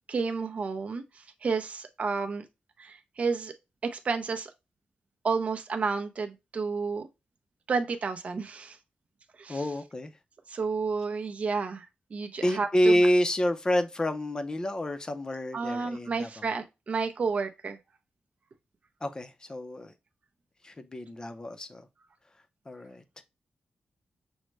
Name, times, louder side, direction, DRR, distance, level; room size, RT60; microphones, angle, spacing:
voice 1, 0.1-2.4 2.8-3.5 3.8-4.5 5.2-7.1 7.7-8.8 9.4-9.6 10.5-11.9 12.1-12.9 15.5-17.8, right 4 dB, 45° right, 0.5 m, -31 dB
voice 2, 9.5-10.1 12.4-16.5 19.0-19.9 20.6-21.8 22.7-23.2, equal, 25° left, 0.5 m, -28 dB
6.2 x 2.1 x 3.2 m
wide cardioid pair, 125°, 3 cm